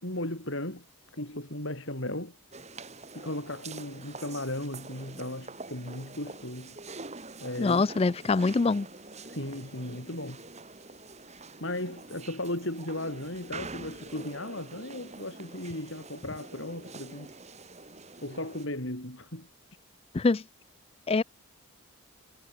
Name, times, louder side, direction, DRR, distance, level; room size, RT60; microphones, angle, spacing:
voice 1, 0.0-0.8 1.1-2.3 3.1-6.8 7.4-7.9 9.3-10.4 11.6-17.3 18.2-19.5, left 1 dB, 55° left, 4.6 m, -36 dB
sound 1, 2.5-18.7, right 3 dB, 30° right, 2.8 m, -45 dB
voice 2, 7.6-8.9 20.1-20.4 21.1-21.2, left 3 dB, 25° left, 0.3 m, -24 dB
head